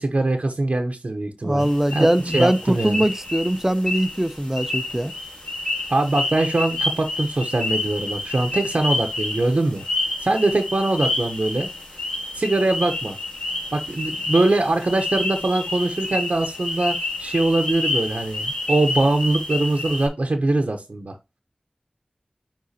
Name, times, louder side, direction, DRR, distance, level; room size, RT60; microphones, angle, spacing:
voice 1, 0.0-1.7 1.9-2.1 2.3-3.0 5.9-9.8 10.2-11.7 12.3-13.2 13.7-21.2, right 2 dB, 70° right, 0.7 m, -22 dB
voice 2, 1.4-5.1, right 1 dB, 15° right, 0.5 m, -21 dB
sound 1, 1.6-20.1, left 2 dB, 45° left, 3.4 m, -29 dB
9.8 x 3.7 x 2.7 m
wide cardioid pair, 50°, 2 cm